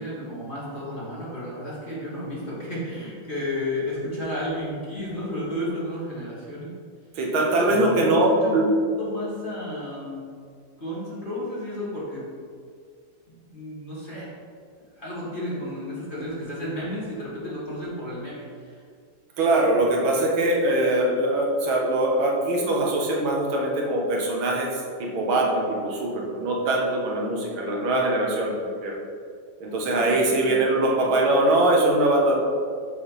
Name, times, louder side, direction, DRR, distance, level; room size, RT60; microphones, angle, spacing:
voice 1, 0.0-6.7 7.5-10.3 10.8-12.2 13.3-14.3 14.9-18.8 29.9-30.6, left 1 dB, 25° left, -8 dB, 1.7 m, -32 dB
voice 2, 7.2-8.6 19.4-29.0 29.6-32.3, right 1 dB, 85° right, -1 dB, 1.8 m, -22 dB
6.9 x 3.3 x 5.5 m, 2.1 s
omnidirectional pair, 2.2 m